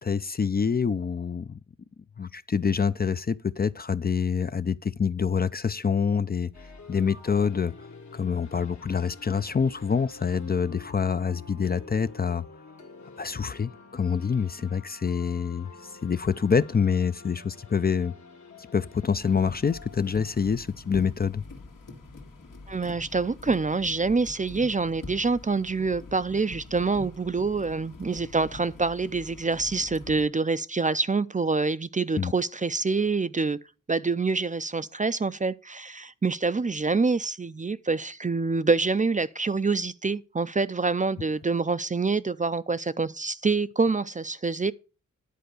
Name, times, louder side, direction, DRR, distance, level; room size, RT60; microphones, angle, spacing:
voice 1, 0.0-1.6 2.2-6.5 6.9-12.4 13.2-18.1 18.7-21.4 32.2-32.3, left 6 dB, 30° left, 0.4 m, -26 dB
sound 1, 6.5-21.4, left 4 dB, 60° left, 1.5 m, -49 dB
sound 2, 19.2-30.3, left 3 dB, 85° left, 2.0 m, -44 dB
voice 2, 22.7-33.6 33.9-44.7, right 4 dB, 25° right, 0.4 m, -26 dB
10.5 x 4.6 x 6.6 m
cardioid pair, 60°, 31 cm